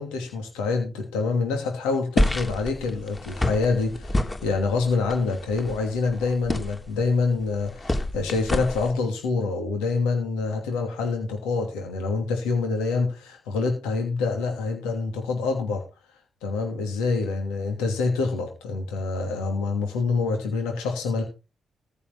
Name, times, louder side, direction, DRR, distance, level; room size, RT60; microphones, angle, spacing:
voice 1, 0.0-15.8 16.4-21.2, left 4 dB, 85° left, 3 dB, 2.8 m, -26 dB
sound 1, 2.2-8.9, left 1 dB, 25° left, 3.1 m, -29 dB
14.5 x 5.4 x 7.2 m, 0.30 s
hypercardioid pair, 40°, 0 cm